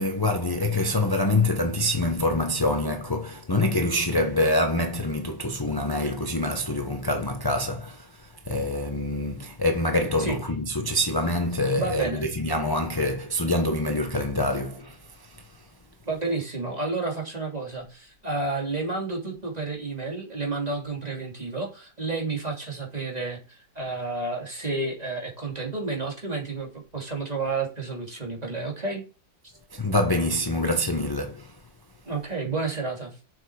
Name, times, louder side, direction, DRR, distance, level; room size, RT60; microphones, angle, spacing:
voice 1, 0.0-15.5 29.7-31.6, left 1 dB, 20° left, 0.6 m, -26 dB
voice 2, 11.7-12.3 16.0-29.0 29.4-29.5 32.1-33.2, right 3 dB, 20° right, 2.9 m, -31 dB
7.8 x 7.0 x 4.8 m
omnidirectional pair, 2.1 m